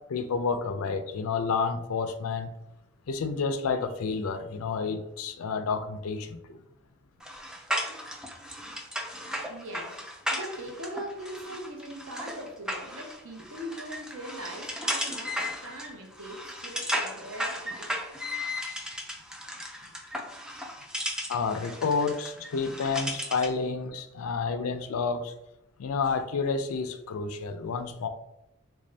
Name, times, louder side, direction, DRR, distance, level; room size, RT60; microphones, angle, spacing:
voice 1, 0.1-2.5 3.1-6.6 21.3-25.3 25.8-28.1, left 5 dB, 75° left, 9 dB, 0.4 m, -30 dB
sound 1, 7.2-23.6, equal, 5° right, 0.3 m, -35 dB
voice 2, 9.5-10.0 10.3-17.9, right 1 dB, 60° right, 2 dB, 0.8 m, -41 dB
3.4 x 2.6 x 3.2 m, 0.89 s
head